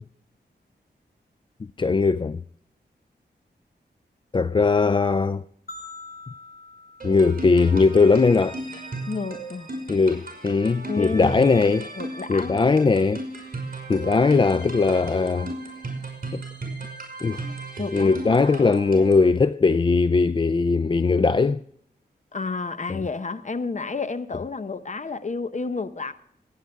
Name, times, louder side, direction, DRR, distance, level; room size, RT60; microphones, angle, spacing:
voice 1, 1.8-2.4 4.3-5.4 7.0-8.6 9.9-11.9 12.3-13.2 13.9-15.5 16.3-16.4 17.2-17.4 17.9-21.6 22.9-23.1, left 4 dB, 25° left, 0.3 m, -20 dB
sound 1, 5.7-8.0, left 2 dB, 60° left, 6.1 m, -44 dB
sound 2, 7.0-19.3, right 2 dB, 50° right, 5.8 m, -36 dB
voice 2, 9.1-9.7 10.9-11.5 12.0-12.6 17.8-18.4 22.3-26.1, left 4 dB, 40° left, 0.9 m, -31 dB
18.0 x 9.3 x 3.5 m
wide cardioid pair, 65°, 18 cm